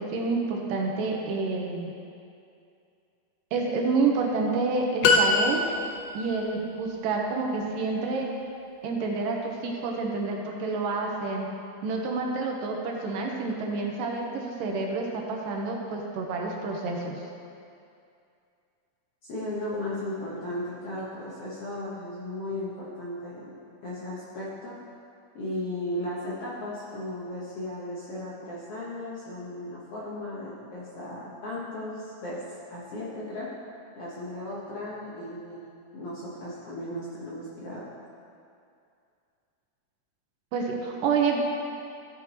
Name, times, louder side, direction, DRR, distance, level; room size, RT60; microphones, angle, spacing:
voice 1, 0.0-1.9 3.5-5.6 6.1-8.3 8.8-11.5 11.8-17.2 40.5-41.4, right 4 dB, 75° right, 0 dB, 2.5 m, -28 dB
sound 1, 5.0-6.2, left 3 dB, 75° left, 2.1 m, -22 dB
voice 2, 19.2-23.6 23.8-24.8 25.3-32.4 32.7-33.5 34.0-35.7 35.9-37.8, left 1 dB, 60° left, -7 dB, 1.6 m, -36 dB
14.0 x 8.3 x 3.0 m, 2.5 s
omnidirectional pair, 4.0 m